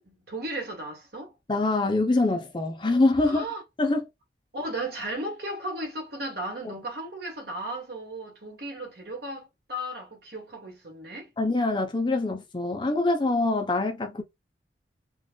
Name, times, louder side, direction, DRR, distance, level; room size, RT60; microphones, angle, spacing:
voice 1, 0.1-1.3 3.2-3.6 4.5-11.3, right 1 dB, 55° right, 1.4 m, -35 dB
voice 2, 1.5-3.4 3.8-4.1 11.4-14.2, left 2 dB, 25° left, 0.6 m, -24 dB
3.9 x 2.4 x 2.2 m
head